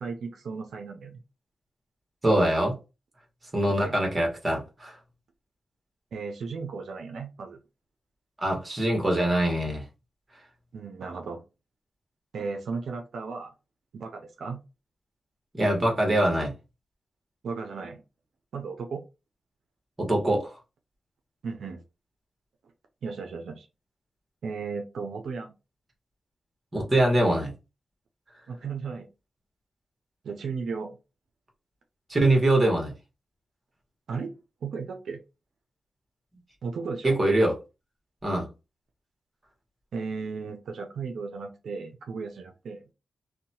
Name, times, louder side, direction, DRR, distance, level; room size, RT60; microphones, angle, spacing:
voice 1, 0.0-1.2 3.7-4.0 6.1-7.6 10.7-11.4 12.3-13.5 13.9-14.6 17.4-18.0 18.5-19.0 21.4-21.8 23.0-23.7 24.4-25.5 28.5-29.1 30.2-31.0 34.1-34.3 34.6-35.2 36.6-37.2 39.9-42.8, right 5 dB, 85° right, 0.4 m, -35 dB
voice 2, 2.2-2.8 3.5-4.9 8.4-9.8 15.5-16.5 20.0-20.5 26.7-27.5 32.1-32.9 37.0-37.5 38.2-38.5, right 1 dB, 30° right, 1.2 m, -23 dB
2.7 x 2.2 x 2.7 m
cardioid pair, 75°, 0 cm